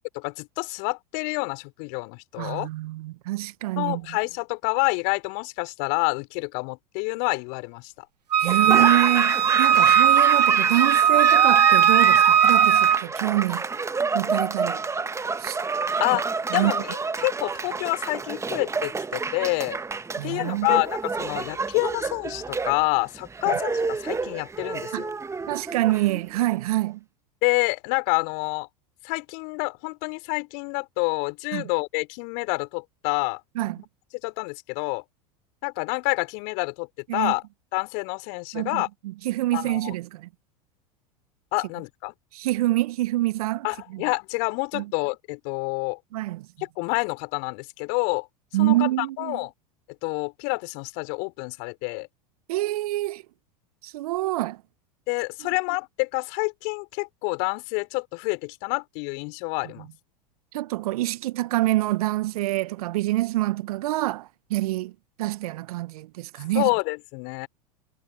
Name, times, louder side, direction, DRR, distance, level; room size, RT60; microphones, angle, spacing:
voice 1, 0.1-2.7 3.8-8.0 16.0-19.8 20.2-25.1 27.4-28.7 29.0-33.4 34.2-35.0 35.6-36.9 37.1-37.4 37.7-38.9 39.5-39.9 41.5-42.1 43.6-46.0 46.7-48.3 48.6-49.5 50.0-52.1 55.1-59.9 66.5-67.5, left 36 dB, 55° left, 5.0 m, -28 dB
voice 2, 2.4-4.2 8.4-13.6 14.1-14.8 15.4-15.6 16.5-16.7 20.2-20.8 24.9-25.0 25.5-27.0 31.5-31.7 33.5-33.8 37.1-37.3 38.5-40.3 42.3-44.0 44.7-44.8 46.1-46.5 48.5-49.4 52.5-53.2 53.8-54.6 59.8-59.9 60.5-64.9 65.2-66.7, right 17 dB, 65° right, 1.2 m, -26 dB
Wind instrument woodwind instrument, 8.3-13.0, right 9 dB, 85° right, 0.7 m, -18 dB
Laughter / Applause, 8.4-26.5, right 4 dB, 15° right, 1.2 m, -29 dB
figure-of-eight pair, 85°, 20 cm